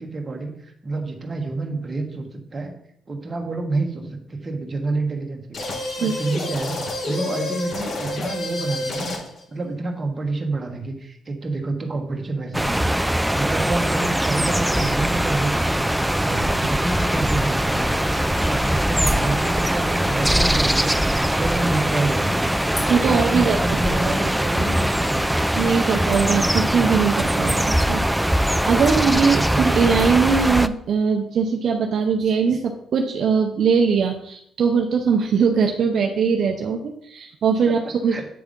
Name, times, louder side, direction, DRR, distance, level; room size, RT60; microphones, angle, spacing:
voice 1, 0.0-2.3 2.5-2.7 3.1-5.6 6.0-6.8 7.1-9.1 9.5-12.9 13.3-15.9 16.2-18.1 18.4-22.5 23.0-25.2 29.3-29.8 38.1-38.2, right 2 dB, 30° right, 1 dB, 1.5 m, -28 dB
sound 1, 5.5-9.4, left 2 dB, 50° left, 1.4 m, -29 dB
sound 2, 12.5-30.7, right 1 dB, 5° right, 0.3 m, -21 dB
sound 3, 17.8-30.2, left 1 dB, 25° left, 2.9 m, -41 dB
voice 2, 22.9-23.8 25.5-28.0 28.4-38.3, right 6 dB, 60° right, 3 dB, 0.7 m, -21 dB
8.6 x 3.5 x 5.2 m, 0.72 s
cardioid pair, 90°, 0 cm